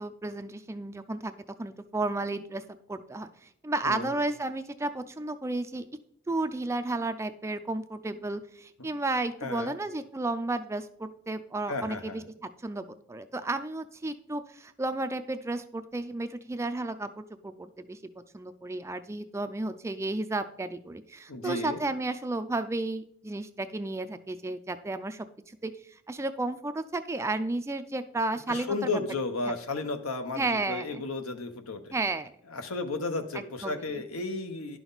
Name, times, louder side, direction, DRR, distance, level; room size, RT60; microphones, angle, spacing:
voice 1, 0.0-1.3 1.6-2.6 2.9-5.8 6.3-18.0 18.3-29.0 29.5-29.6 30.4-31.0 31.9-32.3 33.6-33.9, right 2 dB, 15° right, 9 dB, 0.4 m, -33 dB
voice 2, 9.4-9.7 11.7-12.2 21.3-21.8 28.5-31.9 32.5-34.8, left 3 dB, 80° left, 7 dB, 1.0 m, -33 dB
11.0 x 6.0 x 4.0 m, 0.68 s
head